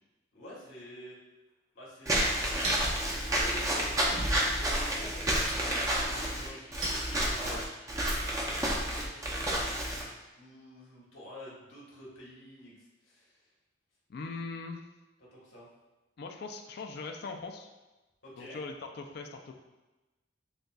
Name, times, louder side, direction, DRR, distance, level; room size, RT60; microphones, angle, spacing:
voice 1, 0.3-1.2 1.7-2.8 3.3-4.1 4.5-7.6 8.2-9.7 10.4-13.4 14.2-14.4 15.3-15.7 18.2-18.6, equal, 80° left, -5 dB, 1.3 m, -49 dB
Chink clink, 2.0-7.7, right 1 dB, 75° right, 1.2 m, -42 dB
Walk footsteps / Squeak, 2.1-10.0, right 1 dB, 15° right, 0.5 m, -30 dB
voice 2, 14.1-14.8 16.2-17.7 18.4-19.5, left 4 dB, 55° left, 4 dB, 0.4 m, -40 dB
6.4 x 2.3 x 2.3 m, 1.1 s
head